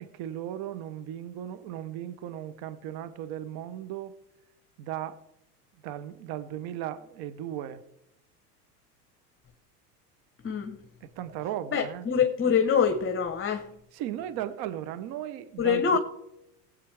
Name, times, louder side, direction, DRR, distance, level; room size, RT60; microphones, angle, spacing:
voice 1, 0.0-4.1 4.8-5.2 5.8-7.8 11.2-12.1 13.9-16.0, right 11 dB, 50° right, 1.0 m, -36 dB
voice 2, 10.4-10.8 11.7-13.7 15.6-16.0, left 7 dB, 25° left, 1.2 m, -25 dB
20.0 x 8.4 x 3.4 m
hypercardioid pair, 80°, 48 cm